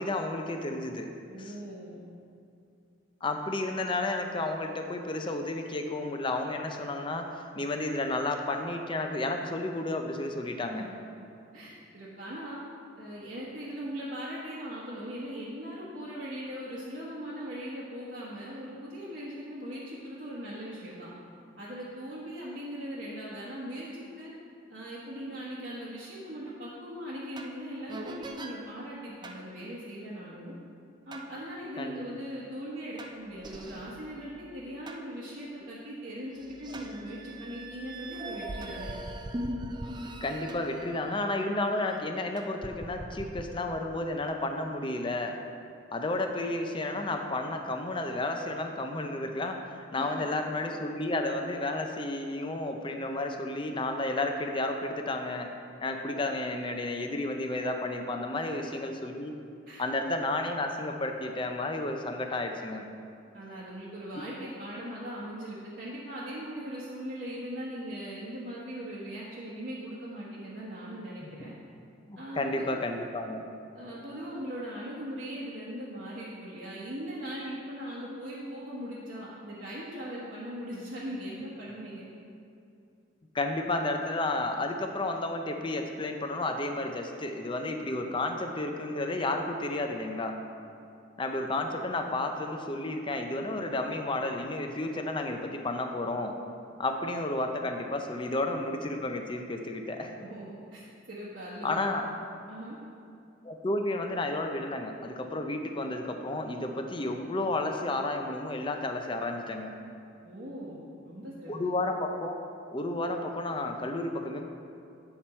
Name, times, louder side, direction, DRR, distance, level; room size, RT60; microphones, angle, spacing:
voice 1, 0.0-1.1 1.4-1.5 3.2-7.3 7.5-10.9 31.8-31.9 40.2-45.4 45.9-49.6 49.9-55.5 55.8-59.3 59.8-62.9 71.2-71.3 72.1-73.4 83.3-90.4 91.2-96.3 96.8-100.1 101.6-102.0 103.4-109.7 111.5-112.4 112.7-114.4, left 2 dB, 25° left, 4 dB, 0.5 m, -32 dB
voice 2, 1.3-2.0 10.7-11.2 11.5-12.6 13.0-21.1 21.6-24.3 24.7-30.5 31.1-38.9 50.0-50.2 58.3-58.4 59.7-59.8 63.3-71.5 72.2-72.8 73.7-82.1 100.1-102.1 102.5-102.8 110.2-110.8 111.0-111.5, equal, 60° right, -8 dB, 1.2 m, -40 dB
sound 1, 27.4-27.6 27.9-28.6 29.2-29.4 31.1-31.3 33.0-35.0 35.6-35.7 36.3-42.1 42.4-43.5, right 1 dB, 25° right, 0.4 m, -41 dB
8.5 x 5.9 x 4.3 m, 2.5 s
head